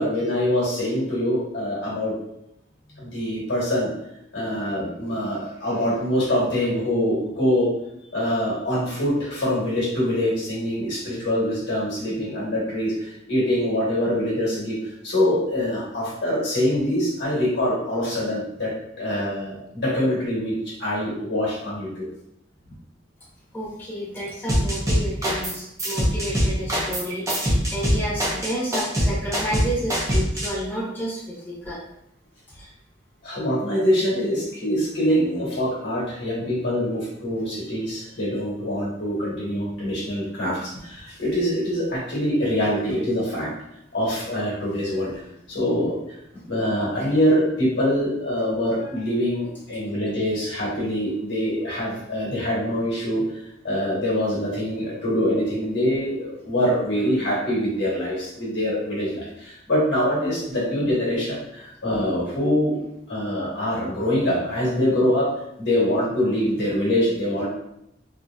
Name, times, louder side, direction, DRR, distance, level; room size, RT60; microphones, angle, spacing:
voice 1, 0.0-2.1 3.0-3.9 4.3-7.7 8.1-14.8 15.0-22.0 33.2-43.5 43.9-45.1 45.5-46.2 46.5-53.3 53.6-62.7 63.1-65.3 65.6-67.5, equal, 70° left, -5 dB, 1.2 m, -24 dB
voice 2, 23.5-31.8 32.5-32.7, equal, 10° left, -8 dB, 0.9 m, -31 dB
sound 1, 24.5-25.5 25.8-30.5, equal, 15° right, 0.6 m, -22 dB
2.8 x 2.7 x 2.3 m, 0.80 s
head